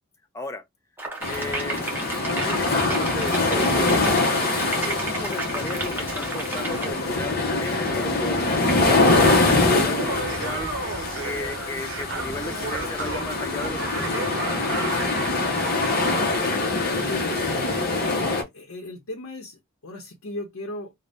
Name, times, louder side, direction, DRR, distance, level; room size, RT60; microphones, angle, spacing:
sound 1, 1.0-6.9, right 3 dB, 10° right, 0.7 m, -33 dB
sound 2, 1.2-18.4, left 2 dB, 45° left, 0.7 m, -24 dB
voice 1, 1.3-2.1 2.4-4.3 4.8-10.7 11.2-14.3, left 2 dB, 15° left, 0.3 m, -35 dB
Laughter, 9.8-15.4, right 4 dB, 60° right, 0.6 m, -34 dB
voice 2, 15.9-17.8 18.4-20.9, left 2 dB, 85° left, 0.7 m, -36 dB
2.6 x 2.1 x 3.3 m
head